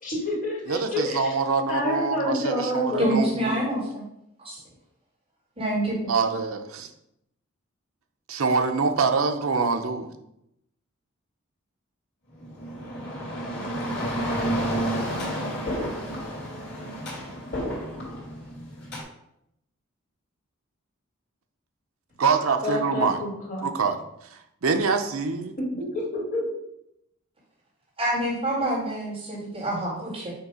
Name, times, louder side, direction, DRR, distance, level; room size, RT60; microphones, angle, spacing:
voice 1, 0.0-1.3 1.7-3.1 22.6-23.7 25.6-26.4, left 1 dB, 40° left, -4 dB, 1.9 m, -28 dB
voice 2, 0.7-3.6 6.1-6.9 8.3-10.1 22.2-23.2 23.6-24.0 24.6-25.5, right 4 dB, 80° right, 6 dB, 0.6 m, -25 dB
voice 3, 3.0-4.0 4.4-4.6 5.6-6.1 28.0-30.3, right 1 dB, 25° right, -7 dB, 2.2 m, -26 dB
sound 1, 12.4-19.0, equal, 55° left, 2.3 m, -30 dB
6.7 x 2.9 x 4.8 m, 0.80 s
head